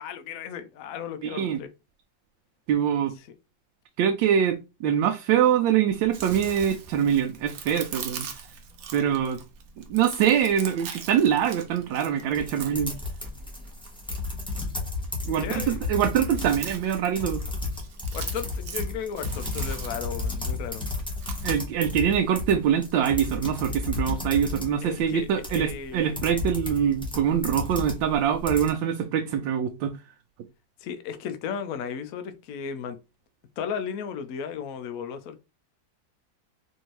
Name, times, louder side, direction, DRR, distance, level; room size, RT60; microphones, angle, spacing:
voice 1, 0.0-1.7 3.2-3.3 15.4-15.9 18.1-20.8 24.8-26.1 30.8-33.0 33.6-35.4, left 7 dB, 65° left, 0.9 m, -35 dB
voice 2, 1.2-1.6 2.7-3.1 4.0-8.3 8.9-9.4 9.9-12.9 15.3-17.4 21.4-29.9, right 9 dB, 85° right, 1.3 m, -24 dB
Chewing mastication, 5.9-21.6, right 6 dB, 65° right, 1.0 m, -42 dB
sound 1, 12.3-28.7, left 3 dB, 5° left, 0.7 m, -32 dB
4.3 x 2.7 x 3.1 m
omnidirectional pair, 2.0 m